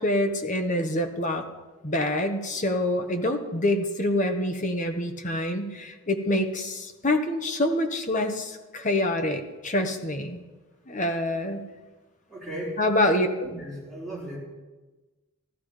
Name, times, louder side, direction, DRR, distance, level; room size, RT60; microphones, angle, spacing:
voice 1, 0.0-1.4 1.8-10.4 10.9-11.6 12.8-13.3, left 1 dB, 35° left, 5 dB, 1.2 m, -26 dB
voice 2, 12.3-12.8 13.4-14.4, right 1 dB, ahead, -5 dB, 3.8 m, -36 dB
14.5 x 13.5 x 5.0 m, 1.2 s
head